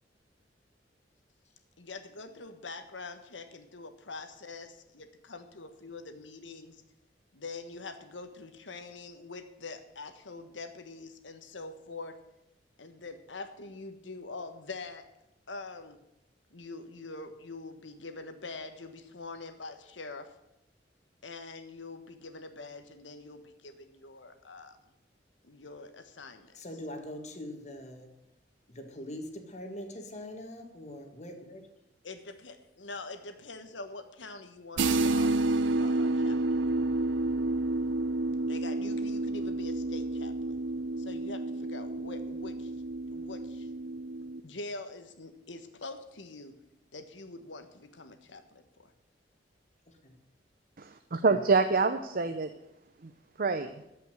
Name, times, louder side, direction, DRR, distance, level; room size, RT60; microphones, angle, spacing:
voice 1, 1.8-6.8 7.3-12.2 12.8-15.1 15.5-16.0 16.5-20.3 21.2-24.9 25.4-26.6 32.0-36.6 38.5-40.5 41.0-42.7 43.1-43.7 44.4-46.5 46.9-48.9, left 3 dB, 85° left, 8 dB, 1.4 m, -44 dB
voice 2, 26.5-28.1 28.7-31.7 49.9-50.2, left 1 dB, 40° left, 5 dB, 1.9 m, -43 dB
sound 1, 34.8-44.4, right 2 dB, 90° right, 0.7 m, -30 dB
voice 3, 50.8-52.5 53.0-53.1 53.4-53.7, right 4 dB, 50° right, 9 dB, 0.7 m, -26 dB
14.0 x 5.7 x 9.2 m, 0.89 s
head